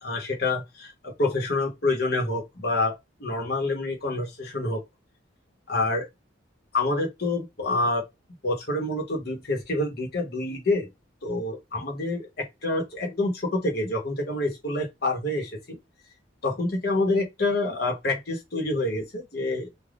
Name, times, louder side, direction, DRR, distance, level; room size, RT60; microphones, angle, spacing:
voice 1, 0.0-4.8 5.7-6.1 6.7-8.0 8.4-10.9 11.2-15.8 16.4-19.7, left 2 dB, 55° left, 1.0 m, -27 dB
3.4 x 2.2 x 2.4 m
head